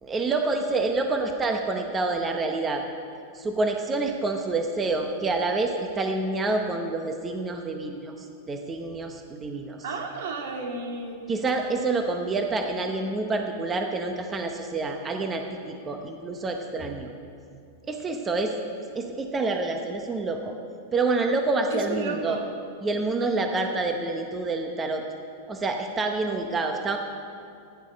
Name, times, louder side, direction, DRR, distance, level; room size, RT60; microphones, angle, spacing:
voice 1, 0.0-2.8 3.3-9.8 11.3-17.1 17.9-18.5 18.9-20.6 20.9-22.4 22.8-25.0 25.5-27.0, right 3 dB, 15° right, 4 dB, 0.8 m, -27 dB
voice 2, 9.8-11.2 21.7-22.5, right 3 dB, 75° right, 2 dB, 2.1 m, -33 dB
14.5 x 10.5 x 5.2 m, 2.5 s
supercardioid pair, 155°, 0 cm